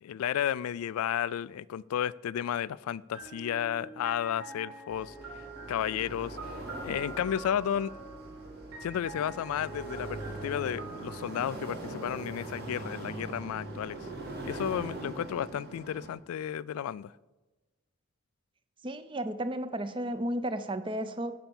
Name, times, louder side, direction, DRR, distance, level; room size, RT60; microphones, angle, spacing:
voice 1, 0.0-5.1 5.7-6.4 6.8-7.9 8.8-14.0 14.5-17.1, left 9 dB, 85° left, 0.3 m, -32 dB
sound 1, 3.1-12.9, right 3 dB, 75° right, 2.9 m, -46 dB
sound 2, 4.9-16.1, right 1 dB, 45° right, 2.1 m, -42 dB
voice 2, 18.8-21.3, right 1 dB, 25° right, 0.5 m, -33 dB
11.5 x 5.6 x 7.1 m
head